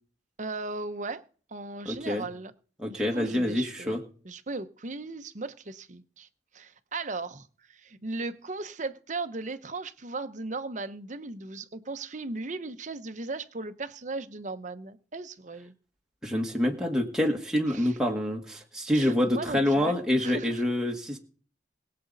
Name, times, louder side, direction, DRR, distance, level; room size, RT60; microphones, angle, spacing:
voice 1, 0.4-1.2 1.5-2.5 2.8-4.0 4.2-6.3 6.5-15.7 17.7-18.0 18.9-20.6, right 3 dB, 45° right, 0.9 m, -37 dB
voice 2, 1.8-2.2 2.8-4.0 16.2-21.2, left 1 dB, 5° right, 1.6 m, -27 dB
21.5 x 7.7 x 4.1 m
head